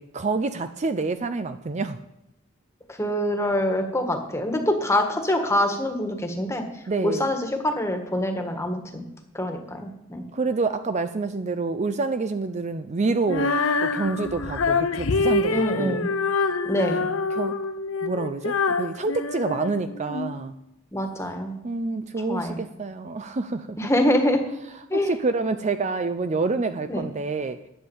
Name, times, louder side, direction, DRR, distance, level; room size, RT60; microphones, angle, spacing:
voice 1, 0.0-2.0 6.9-7.2 10.3-13.5 13.8-16.0 17.0-17.6 18.0-20.5 21.6-23.8 24.9-27.6, right 3 dB, 35° right, 10 dB, 0.5 m, -27 dB
voice 2, 2.9-6.6 7.0-9.0 9.3-10.2 15.5-16.1 16.6-17.0 20.9-21.6 22.3-22.6 23.8-24.4 24.9-25.1 26.9-27.0, left 1 dB, 15° left, 4 dB, 1.6 m, -25 dB
Female singing, 13.3-20.3, left 4 dB, 70° left, 0.8 m, -26 dB
11.0 x 8.7 x 7.1 m, 0.89 s
head